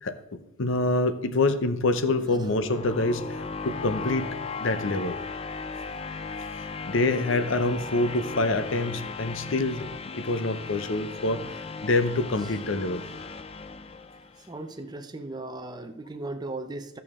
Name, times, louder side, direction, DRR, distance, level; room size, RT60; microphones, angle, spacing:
voice 1, 0.0-5.2 6.5-9.9 10.1-11.4 11.8-13.0, left 2 dB, 60° left, 11 dB, 0.7 m, -26 dB
sound 1, 1.6-14.6, left 4 dB, 25° left, 0.4 m, -37 dB
voice 2, 14.5-17.0, right 2 dB, 20° right, 8 dB, 0.6 m, -37 dB
12.5 x 6.9 x 3.6 m, 0.89 s
head